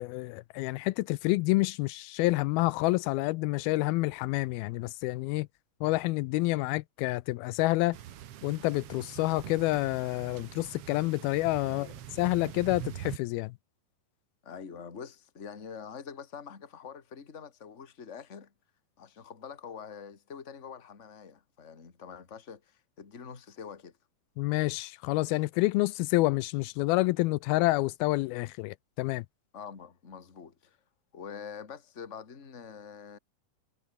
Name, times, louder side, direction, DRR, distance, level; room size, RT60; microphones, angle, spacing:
voice 1, 0.0-5.5 5.8-8.0 8.4-11.9 12.2-13.5 24.4-29.3, left 20 dB, 85° left, 2.5 m, -28 dB
sound 1, 7.9-13.2, right 11 dB, 75° right, 1.3 m, -43 dB
voice 2, 11.7-12.0 14.4-18.5 19.0-23.9 29.5-30.8 31.1-33.2, left 6 dB, 25° left, 2.0 m, -45 dB
omnidirectional pair, 4.3 m